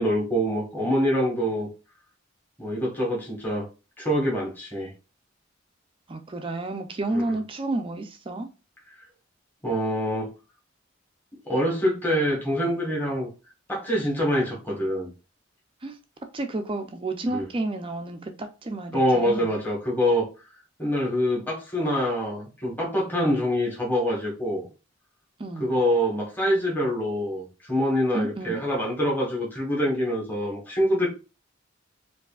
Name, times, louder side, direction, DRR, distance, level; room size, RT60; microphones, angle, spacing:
voice 1, 0.0-1.7 2.6-3.7 4.0-4.9 7.1-7.2 9.6-10.3 11.4-13.3 13.7-15.1 17.3-17.4 18.9-20.3 20.8-24.7 25.6-31.1, equal, 10° left, 1.3 m, -25 dB
voice 2, 6.1-8.5 15.8-16.0 16.3-19.5 25.4-25.7 28.1-28.6, right 2 dB, 25° right, 0.5 m, -31 dB
4.8 x 2.7 x 2.3 m
head